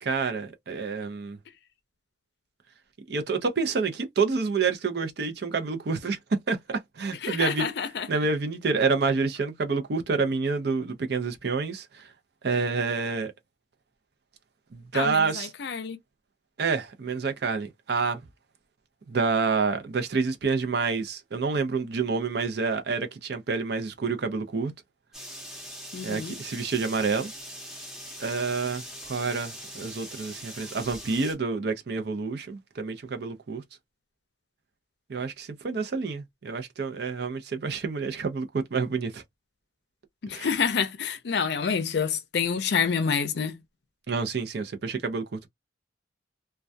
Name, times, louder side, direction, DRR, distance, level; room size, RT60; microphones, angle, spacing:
voice 1, 0.0-1.4 3.1-7.7 8.1-12.1 12.4-13.3 14.7-15.5 16.6-18.2 19.1-24.7 26.0-27.3 28.2-33.6 35.1-39.2 40.3-40.5 44.1-45.5, right 4 dB, 60° right, 0.5 m, -28 dB
voice 2, 7.2-8.1 14.9-16.0 25.9-26.4 40.2-43.6, left 6 dB, 60° left, 0.5 m, -28 dB
sound 1, 25.1-31.4, equal, ahead, 0.8 m, -42 dB
2.2 x 2.2 x 2.5 m
head